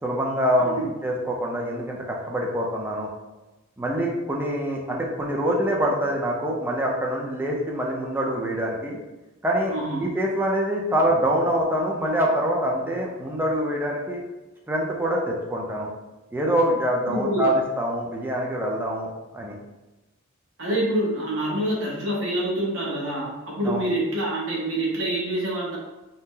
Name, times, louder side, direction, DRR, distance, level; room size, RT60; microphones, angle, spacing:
voice 1, 0.0-3.1 3.8-9.0 9.4-14.2 14.7-15.9 16.3-19.1 19.3-19.5 23.6-23.8, equal, 10° right, -2 dB, 0.4 m, -25 dB
voice 2, 9.7-10.0 17.1-17.4 20.6-25.8, right 1 dB, 65° right, -4 dB, 1.0 m, -26 dB
2.7 x 2.0 x 3.6 m, 1.1 s
head